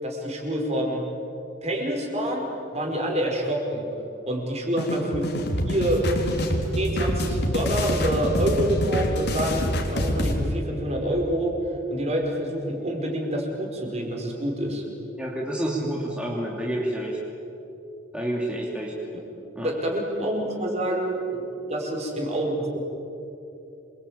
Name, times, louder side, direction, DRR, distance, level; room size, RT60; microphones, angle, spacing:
voice 1, 0.0-1.1 1.6-3.9 4.3-5.3 5.6-6.0 6.3-11.6 11.9-14.8 19.1-19.2 19.6-22.8, right 1 dB, 35° right, 1 dB, 5.1 m, -27 dB
sound 1, 4.8-10.3, equal, 55° left, 3.8 m, -26 dB
voice 2, 15.2-17.2 18.1-18.9 19.5-19.7, right 1 dB, 5° right, -4 dB, 3.1 m, -29 dB
28.0 x 24.0 x 8.8 m, 2.9 s
head